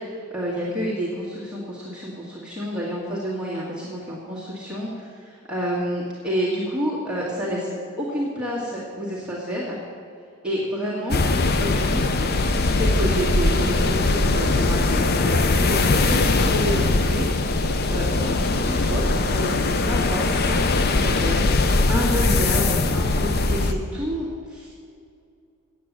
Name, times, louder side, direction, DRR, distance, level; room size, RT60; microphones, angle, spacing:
voice 1, 0.0-7.7 8.0-9.8 10.4-11.2 11.6-17.3 17.9-19.0 19.3-24.7, equal, 5° right, -8 dB, 1.8 m, -29 dB
sound 1, 11.1-23.7, left 2 dB, 45° left, 0.5 m, -21 dB
8.7 x 8.4 x 7.4 m, 2.4 s
head